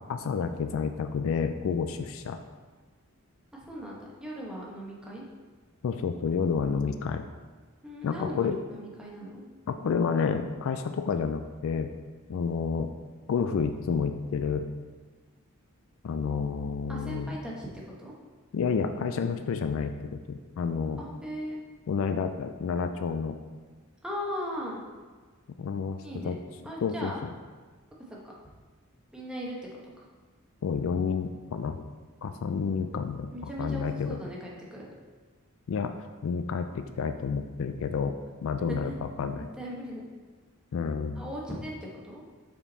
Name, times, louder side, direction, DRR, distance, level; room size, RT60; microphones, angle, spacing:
voice 1, 0.1-2.4 5.8-7.2 8.0-8.6 9.7-11.9 12.3-12.9 13.3-14.6 16.0-17.3 18.5-21.0 21.9-23.4 25.6-26.4 26.8-27.1 30.6-31.8 32.2-34.2 35.7-35.9 36.2-38.1 38.4-39.5 40.7-41.2, left 5 dB, 65° left, 8 dB, 0.3 m, -30 dB
voice 2, 3.5-5.2 7.8-9.4 16.9-18.1 21.0-21.6 24.0-24.8 26.0-26.3 26.6-27.2 28.1-28.2 29.1-29.6 30.0-30.1 33.3-34.9 38.6-39.0 39.4-40.1 41.2-42.2, equal, 5° right, -4 dB, 1.0 m, -38 dB
5.6 x 4.4 x 4.1 m, 1.4 s
head